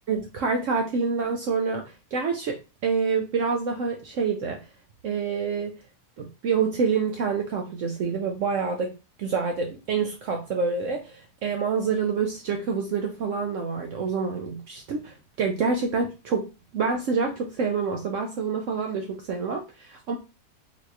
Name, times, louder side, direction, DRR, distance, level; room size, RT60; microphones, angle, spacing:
voice 1, 0.1-4.6 5.0-5.8 6.2-16.5 16.7-20.2, right 5 dB, 70° right, 3 dB, 0.7 m, -27 dB
3.9 x 2.9 x 2.3 m, 0.29 s
omnidirectional pair, 1.7 m